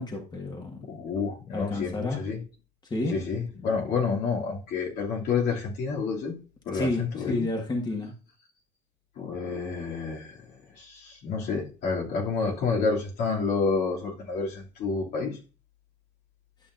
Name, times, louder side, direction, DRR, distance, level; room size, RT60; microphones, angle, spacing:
voice 1, 0.0-0.9 1.5-2.3 2.9-3.2 6.7-8.1, left 2 dB, 25° left, 1.7 m, -30 dB
voice 2, 0.9-2.4 3.1-6.4 6.7-7.5 9.2-10.3 10.7-15.4, left 5 dB, 65° left, 2.8 m, -29 dB
11.5 x 5.9 x 2.6 m
cardioid pair, 105°, 19 cm